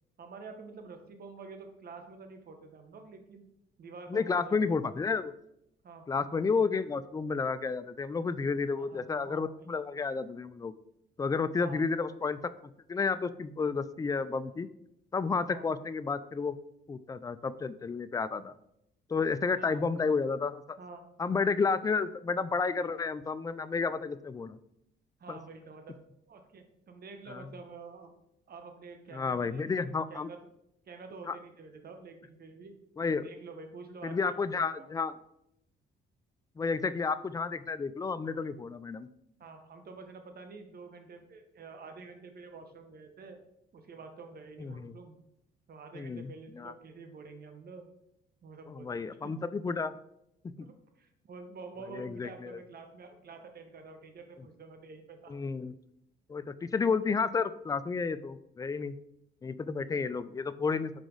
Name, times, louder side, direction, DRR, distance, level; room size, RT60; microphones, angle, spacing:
voice 1, 0.2-3.4 3.8-4.6 5.8-6.1 8.8-9.6 11.6-11.8 15.5-15.7 19.6-19.8 20.8-21.1 25.2-26.0 26.3-28.1 28.5-30.4 30.9-32.7 33.2-34.9 39.4-43.4 43.7-45.2 45.7-47.9 48.4-49.3 50.6-55.3, right 4 dB, 50° right, 6 dB, 1.0 m, -48 dB
voice 2, 4.1-5.3 6.1-10.7 11.2-12.4 12.9-14.7 15.1-16.6 16.9-18.5 19.1-20.8 21.2-24.6 25.3-25.4 27.3-27.5 29.1-30.3 31.3-31.4 33.0-33.3 34.0-35.1 36.6-39.1 44.6-44.9 45.9-46.7 48.7-49.9 50.6-50.7 51.9-52.6 55.3-55.7 56.3-59.0 59.4-60.9, left 4 dB, 20° left, 14 dB, 0.3 m, -31 dB
5.0 x 4.9 x 3.9 m, 0.79 s
cardioid pair, 90°, 20 cm